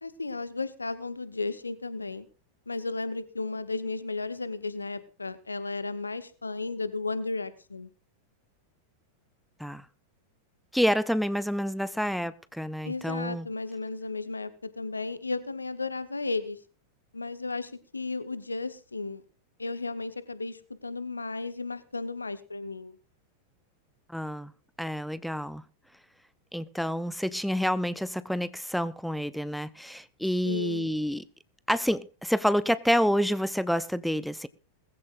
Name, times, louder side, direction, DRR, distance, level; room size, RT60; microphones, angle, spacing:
voice 1, 0.0-2.3 2.7-7.9 12.8-16.6 17.1-19.2 19.6-23.0 30.4-30.9, left 3 dB, 80° left, 1.1 m, -34 dB
voice 2, 10.7-13.5 24.1-24.5 24.8-25.6 26.5-31.2 31.7-34.5, equal, ahead, 0.5 m, -28 dB
20.0 x 15.0 x 2.5 m
figure-of-eight pair, 90°, 0 cm